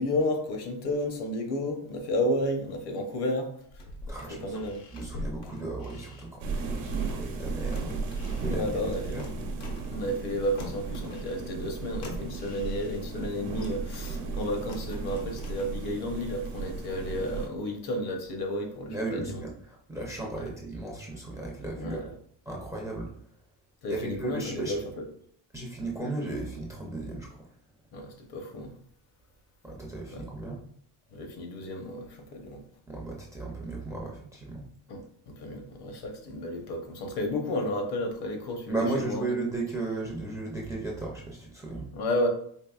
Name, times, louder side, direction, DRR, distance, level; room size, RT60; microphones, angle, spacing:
voice 1, 0.0-3.8 4.4-4.8 8.4-9.2 9.9-19.4 21.8-22.1 23.8-25.0 27.9-28.7 30.1-30.2 31.1-32.6 34.9-39.3 41.9-42.3, left 1 dB, 65° left, 4 dB, 0.9 m, -32 dB
sound 1, 3.6-7.4 7.7-10.3 10.6-13.2 13.6-16.1 16.4-16.5, left 1 dB, 90° left, 1.0 m, -45 dB
voice 2, 4.1-4.6 4.9-8.0 8.4-9.3 18.9-22.1 22.5-23.1 23.9-24.7 25.5-27.4 29.6-30.6 32.9-34.6 38.7-41.9, right 2 dB, 10° right, -2 dB, 0.4 m, -35 dB
sound 2, 6.4-17.5, right 4 dB, 80° right, 0.9 m, -35 dB
4.6 x 2.9 x 2.3 m, 0.64 s
cardioid pair, 150°, 42 cm